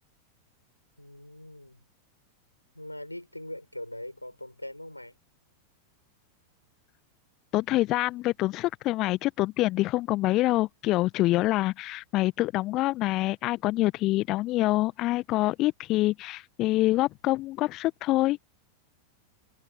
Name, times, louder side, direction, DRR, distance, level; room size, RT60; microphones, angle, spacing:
voice 1, 1.0-1.8 2.7-5.2, left 1 dB, 85° left, 6.0 m, -41 dB
voice 2, 7.5-18.4, left 17 dB, 35° left, 0.9 m, -26 dB
figure-of-eight pair, 90°, 0 cm